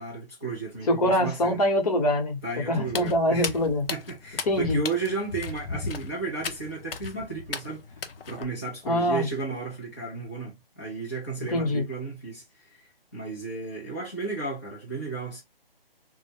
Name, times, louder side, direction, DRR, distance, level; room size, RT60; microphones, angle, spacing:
voice 1, 0.0-1.6 2.4-3.5 3.9-7.8 8.3-12.4 12.7-15.4, right 3 dB, 15° left, 0.4 m, -34 dB
voice 2, 0.9-2.4 2.7-3.9 4.5-4.8 8.8-9.3 11.5-11.8, left 1 dB, 40° left, 0.9 m, -24 dB
Walk footsteps, 2.8-8.4, left 5 dB, 70° left, 0.6 m, -36 dB
2.2 x 2.0 x 3.3 m
figure-of-eight pair, 155°, 30 cm